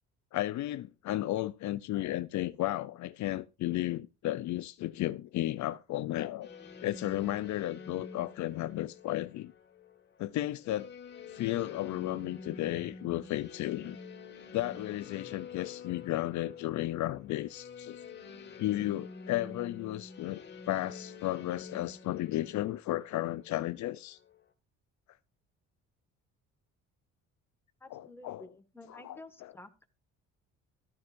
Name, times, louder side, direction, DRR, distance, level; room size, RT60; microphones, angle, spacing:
voice 1, 0.3-6.5 6.8-9.5 10.2-10.9 11.3-14.0 14.5-18.0 18.6-20.4 20.7-24.2 27.9-28.4 28.9-29.5, left 15 dB, 65° left, 0.6 m, -34 dB
sound 1, 6.4-24.5, left 5 dB, 35° left, 2.1 m, -48 dB
voice 2, 27.8-29.9, left 2 dB, 5° left, 1.8 m, -51 dB
14.0 x 13.0 x 2.6 m
cardioid pair, 110°, 31 cm